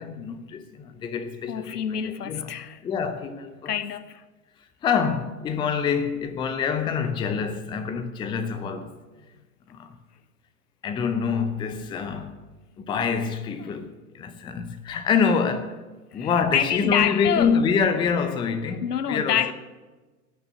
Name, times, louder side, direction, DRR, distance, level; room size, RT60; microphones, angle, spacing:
voice 1, 0.0-2.5 2.8-3.7 4.8-8.9 9.7-10.0 10.8-12.4 12.8-15.8 16.1-19.5, left 6 dB, 10° left, 0.6 m, -26 dB
voice 2, 1.5-2.8 3.7-4.2 16.1-17.6 18.8-19.5, left 9 dB, 85° left, 0.7 m, -27 dB
17.5 x 6.2 x 7.9 m
figure-of-eight pair, 105°, 45 cm